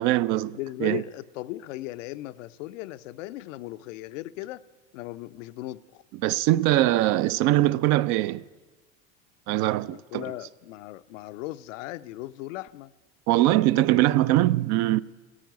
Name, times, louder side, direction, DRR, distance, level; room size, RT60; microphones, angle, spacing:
voice 1, 0.0-1.0 6.2-8.4 9.5-10.3 13.3-15.0, right 15 dB, 50° right, 0.4 m, -22 dB
voice 2, 0.5-4.6 4.9-6.0 9.8-12.9, left 16 dB, 75° left, 0.6 m, -37 dB
15.0 x 8.6 x 9.2 m
hypercardioid pair, 105°, 38 cm